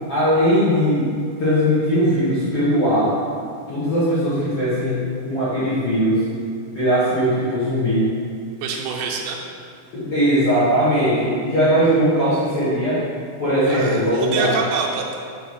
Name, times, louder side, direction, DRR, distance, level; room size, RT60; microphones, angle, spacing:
voice 1, 0.1-1.1 1.4-3.1 3.7-6.3 6.7-8.1 9.9-13.0 13.4-14.5, equal, 55° left, -13 dB, 1.6 m, -19 dB
voice 2, 8.6-9.4 13.7-15.2, right 5 dB, 90° right, -1 dB, 3.4 m, -26 dB
7.6 x 3.5 x 6.4 m, 2.3 s
omnidirectional pair, 5.6 m